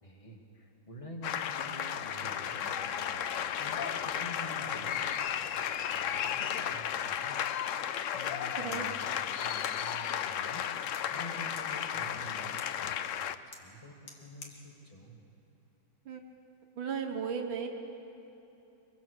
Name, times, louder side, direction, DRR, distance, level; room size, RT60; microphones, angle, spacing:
voice 1, 0.0-7.4 8.1-15.2, equal, 15° left, 1 dB, 2.3 m, -49 dB
sound 1, 1.2-13.3, left 9 dB, 90° left, 0.6 m, -34 dB
sound 2, 1.9-7.1, right 2 dB, 60° right, 2.9 m, -52 dB
sound 3, 8.6-16.3, left 3 dB, 75° left, 2.8 m, -56 dB
voice 2, 8.6-8.9 16.1-16.2 16.8-17.7, right 6 dB, 85° right, 3 dB, 1.9 m, -35 dB
24.5 x 23.0 x 6.6 m, 3.0 s
omnidirectional pair, 2.1 m